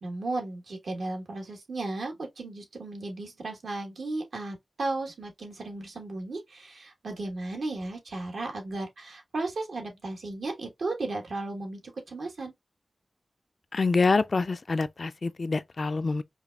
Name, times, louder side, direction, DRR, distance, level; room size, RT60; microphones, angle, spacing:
voice 1, 0.0-12.5, right 2 dB, 85° right, 1.3 m, -35 dB
voice 2, 13.7-16.2, left 3 dB, 60° left, 0.3 m, -26 dB
4.9 x 2.3 x 2.3 m
wide cardioid pair, 65°, 0 cm